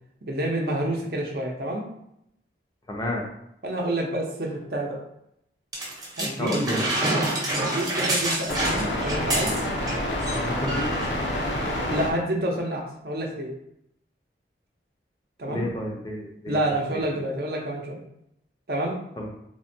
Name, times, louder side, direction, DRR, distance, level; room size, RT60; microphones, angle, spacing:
voice 1, 0.3-1.9 3.6-5.0 6.2-6.6 7.5-9.5 10.9-11.0 11.9-13.5 15.4-15.7 16.5-18.0 18.7-19.0, right 1 dB, 60° right, 0 dB, 0.6 m, -28 dB
voice 2, 2.9-3.2 6.4-7.1 10.4-10.9 15.5-16.6 19.2-19.3, left 1 dB, 20° left, 0 dB, 0.4 m, -30 dB
sound 1, 5.7-9.9 10.2-10.4 10.7-11.1 11.8-11.9, right 1 dB, 20° right, 0.7 m, -27 dB
sound 2, 8.5-12.1, left 1 dB, 85° left, 0.6 m, -27 dB
3.4 x 2.1 x 2.6 m, 0.78 s
head